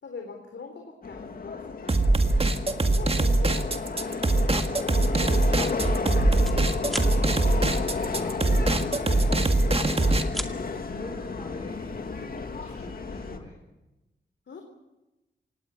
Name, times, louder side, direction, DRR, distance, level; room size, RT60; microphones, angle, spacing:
voice 1, 0.0-6.6 9.9-10.1 14.5-14.6, left 4 dB, 75° left, 3 dB, 3.7 m, -44 dB
Subway metro underground, 1.0-13.4, left 4 dB, 50° left, 2.3 m, -32 dB
sound 1, 1.9-10.2, right 2 dB, 30° right, 1.9 m, -23 dB
sound 2, 6.3-6.6 6.9-7.1 8.7-9.5 9.8-10.5, equal, ahead, 2.2 m, -36 dB
voice 2, 7.4-9.2 10.8-13.6, left 2 dB, 35° left, -1 dB, 4.6 m, -44 dB
25.5 x 19.0 x 8.7 m, 1.0 s
wide cardioid pair, 120°, 19 cm